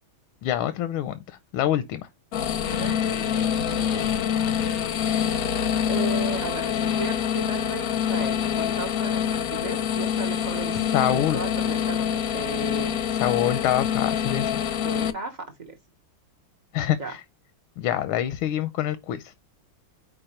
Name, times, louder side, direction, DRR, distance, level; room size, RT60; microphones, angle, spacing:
voice 1, 0.4-2.0 10.9-11.4 13.1-14.6 16.7-17.2 17.8-19.3, left 11 dB, 85° left, 1.5 m, -26 dB
sound 1, 2.3-15.1, left 8 dB, 65° left, 0.9 m, -26 dB
voice 2, 2.6-4.0 5.9-13.0 14.8-15.8 17.0-17.2, right 3 dB, 55° right, 0.4 m, -36 dB
4.8 x 4.7 x 4.3 m
omnidirectional pair, 2.2 m